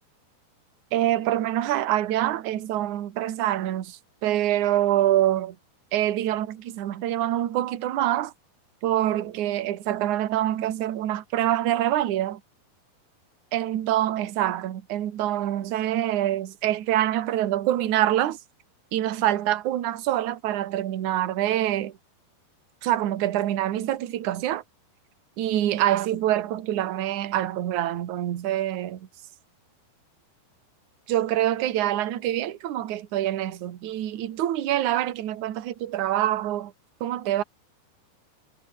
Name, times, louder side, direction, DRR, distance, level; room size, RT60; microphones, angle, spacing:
voice 1, 0.9-5.6 5.9-8.3 8.8-12.4 13.5-18.4 18.9-21.9 22.8-24.6 25.4-29.1 31.1-36.7 37.0-37.4, right 13 dB, 55° right, 2.6 m, -25 dB
omnidirectional pair, 4.9 m